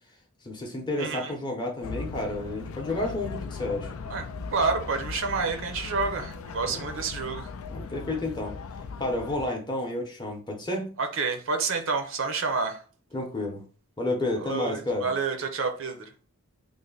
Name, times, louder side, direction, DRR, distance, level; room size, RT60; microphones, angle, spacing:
voice 1, 0.4-3.9 6.7-6.8 7.7-8.6 9.0-10.9 13.1-13.6 14.0-15.1, left 2 dB, 20° left, 0.7 m, -31 dB
voice 2, 1.0-1.4 4.1-4.2 4.5-7.5 11.0-12.8 14.4-16.1, right 4 dB, 60° right, 0.6 m, -29 dB
sound 1, 1.8-9.5, left 4 dB, 70° left, 0.4 m, -38 dB
3.2 x 2.1 x 3.8 m
head